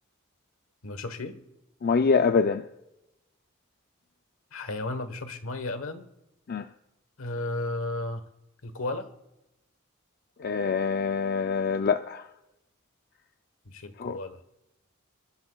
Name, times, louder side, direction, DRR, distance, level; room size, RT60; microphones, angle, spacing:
voice 1, 0.8-1.4 4.5-6.1 7.2-8.3 8.6-9.1 13.6-14.4, left 2 dB, 75° left, 1.2 m, -34 dB
voice 2, 1.8-2.7 6.5-6.7 10.4-12.2 14.0-14.2, left 5 dB, 45° left, 0.4 m, -25 dB
28.0 x 12.5 x 2.3 m
head